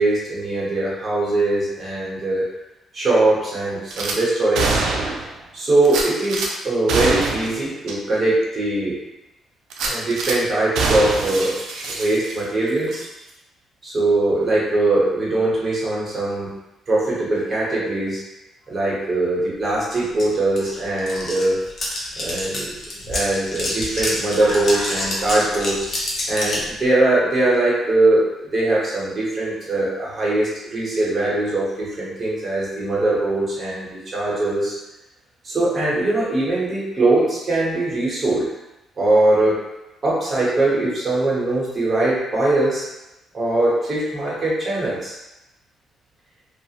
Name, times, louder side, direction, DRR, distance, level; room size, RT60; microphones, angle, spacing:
voice 1, 0.0-2.5 2.9-4.8 5.5-9.0 9.8-11.6 11.9-13.0 13.8-16.6 16.9-18.2 18.7-21.6 22.2-22.8 23.1-25.9 26.3-34.7 35.4-38.5 39.0-39.6 40.0-42.9 43.3-45.2, right 2 dB, 35° right, -6 dB, 1.1 m, -21 dB
Gunshot gunfire / Glass, 3.9-4.2 4.5-5.3 5.8-6.5 6.9-7.5 7.9-8.0 8.4-8.5 9.7-10.4 10.7-12.5 12.9-13.1, right 3 dB, 80° right, 0.4 m, -24 dB
sound 1, 19.9-20.0 20.2-26.7, left 1 dB, 50° left, 0.8 m, -27 dB
2.4 x 2.3 x 2.9 m, 0.98 s
cardioid pair, 90°, 0 cm